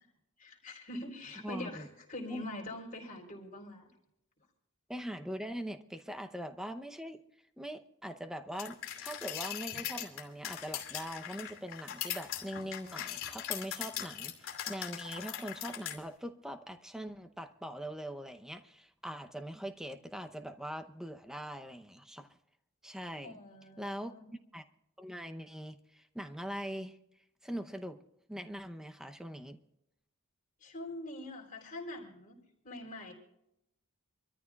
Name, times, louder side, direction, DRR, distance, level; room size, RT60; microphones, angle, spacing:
voice 1, 0.4-3.9 23.2-24.2 30.6-33.1, left 1 dB, 35° left, -1 dB, 3.6 m, -44 dB
voice 2, 1.4-1.9 2.3-2.4 4.9-7.2 7.6-22.3 22.8-23.4 23.8-24.6 25.0-27.0 27.4-28.0 28.3-29.6, equal, ahead, 7 dB, 0.7 m, -42 dB
sound 1, 8.6-16.0, left 10 dB, 65° left, 2.6 m, -40 dB
26.0 x 13.5 x 2.4 m, 0.83 s
head